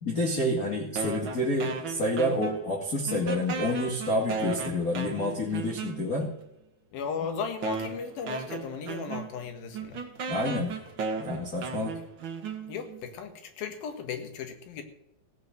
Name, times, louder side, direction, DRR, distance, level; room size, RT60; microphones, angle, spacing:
voice 1, 0.0-6.4 10.3-10.8 11.2-12.0, left 1 dB, 30° left, -2 dB, 2.1 m, -29 dB
sound 1, 1.0-2.8 3.1-6.3 7.0-7.1 7.6-13.0, right 5 dB, 50° right, 1.6 m, -36 dB
voice 2, 6.9-10.0 11.9-12.0 12.7-14.8, left 6 dB, 90° left, 6 dB, 3.5 m, -36 dB
16.0 x 6.6 x 7.9 m, 0.86 s
omnidirectional pair, 4.1 m